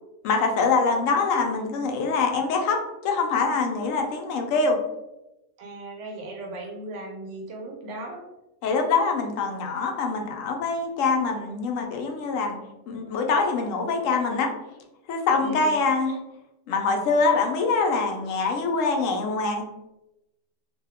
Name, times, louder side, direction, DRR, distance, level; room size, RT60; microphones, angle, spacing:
voice 1, 0.2-4.8 8.6-12.6 12.9-14.5 15.1-16.2 16.7-19.8, left 4 dB, 85° left, 3 dB, 1.0 m, -24 dB
voice 2, 5.6-8.3 15.4-15.8, right 1 dB, 70° right, 0 dB, 1.0 m, -37 dB
2.7 x 2.2 x 3.4 m, 0.96 s
omnidirectional pair, 1.3 m